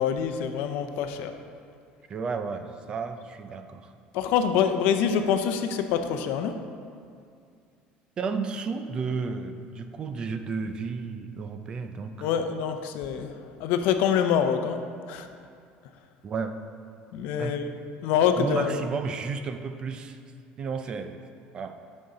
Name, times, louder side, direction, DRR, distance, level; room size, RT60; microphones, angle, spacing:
voice 1, 0.0-1.3 4.1-6.5 12.2-13.3 13.6-14.8 15.1-15.3 17.1-17.7 18.0-18.8, left 8 dB, 65° left, 7 dB, 0.6 m, -25 dB
voice 2, 2.1-3.9 8.2-12.3 16.2-16.5 17.4-17.5 18.4-20.2 20.6-21.2 21.5-21.8, right 5 dB, 25° right, 8 dB, 0.4 m, -32 dB
12.5 x 5.4 x 3.8 m, 2.3 s
cardioid pair, 170°, 3 cm